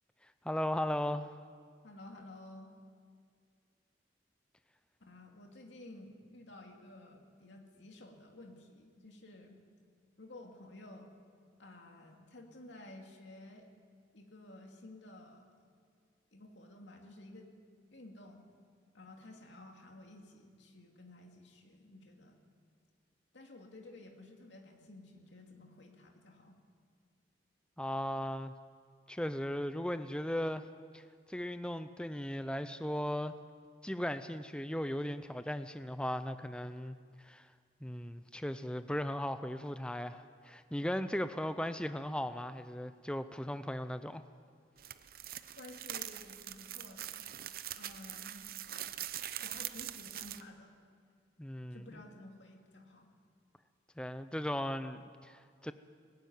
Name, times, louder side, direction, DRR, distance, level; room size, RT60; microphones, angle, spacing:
voice 1, 0.4-1.3 27.8-28.5 29.1-30.7 30.9-33.3 33.8-37.5 37.8-44.2 51.4-51.9 54.0-55.7, left 1 dB, 5° left, 11 dB, 0.5 m, -37 dB
voice 2, 1.8-2.7 5.0-9.6 10.2-11.1 11.6-13.7 14.1-15.4 16.3-17.5 17.9-18.5 18.9-22.4 23.3-26.6 45.6-47.2 47.7-48.5 49.4-50.7 51.7-53.1, left 2 dB, 85° left, 2 dB, 2.4 m, -53 dB
sound 1, 44.8-50.4, right 12 dB, 50° right, 0.7 m, -43 dB
20.0 x 14.5 x 9.4 m, 2.1 s
head